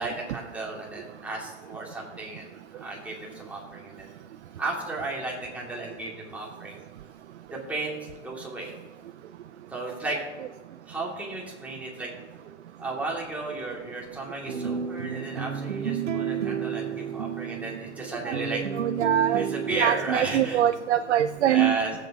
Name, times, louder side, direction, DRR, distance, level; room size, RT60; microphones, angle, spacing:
voice 1, 0.0-2.5 2.7-4.1 4.6-6.8 7.5-8.0 8.2-8.7 9.7-10.2 10.9-12.1 12.8-18.6 19.3-20.6 21.4-21.9, right 2 dB, 5° right, -4 dB, 2.5 m, -34 dB
sound 1, 14.5-20.8 21.2-21.3, right 7 dB, 85° right, 1.0 m, -32 dB
voice 2, 18.3-19.4 19.8-21.8, right 11 dB, 70° right, 10 dB, 0.6 m, -24 dB
17.0 x 7.9 x 2.9 m, 1.2 s
hypercardioid pair, 130°, 36 cm